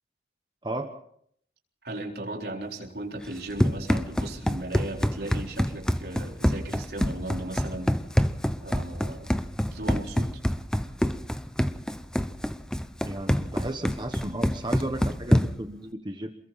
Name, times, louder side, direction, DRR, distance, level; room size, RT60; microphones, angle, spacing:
voice 1, 1.8-8.0 8.6-9.3 9.6-10.3, right 1 dB, 65° right, 1 dB, 4.0 m, -36 dB
Run, 3.2-15.7, equal, 5° left, 0.8 m, -26 dB
voice 2, 13.0-16.3, right 1 dB, 25° right, 5 dB, 1.2 m, -34 dB
28.0 x 21.5 x 4.2 m, 0.68 s
head